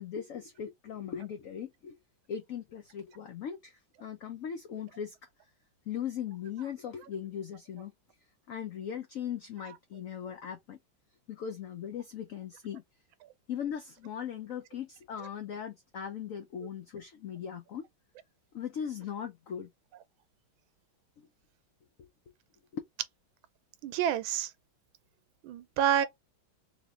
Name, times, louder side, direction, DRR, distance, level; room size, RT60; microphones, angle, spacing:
voice 1, 0.0-1.9 2.3-5.1 5.9-7.9 8.5-10.8 11.3-12.8 13.5-17.8 18.5-19.7 21.2-21.3, left 8 dB, 90° left, 0.7 m, -39 dB
voice 2, 23.8-24.5 25.4-26.1, right 9 dB, 90° right, 1.4 m, -28 dB
3.1 x 3.0 x 3.4 m
omnidirectional pair, 2.1 m